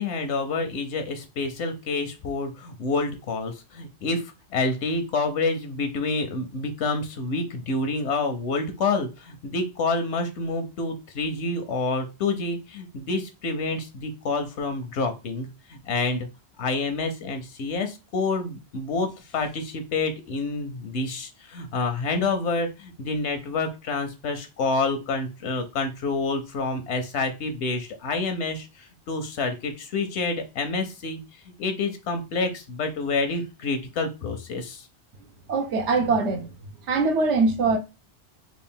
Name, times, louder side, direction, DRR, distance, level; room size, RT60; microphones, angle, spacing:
voice 1, 0.0-16.3 16.6-31.2 31.6-34.9, left 3 dB, 80° left, 1.0 m, -28 dB
voice 2, 35.5-36.5 36.9-37.8, right 3 dB, 80° right, 1.0 m, -22 dB
3.6 x 2.4 x 3.6 m
omnidirectional pair, 1.2 m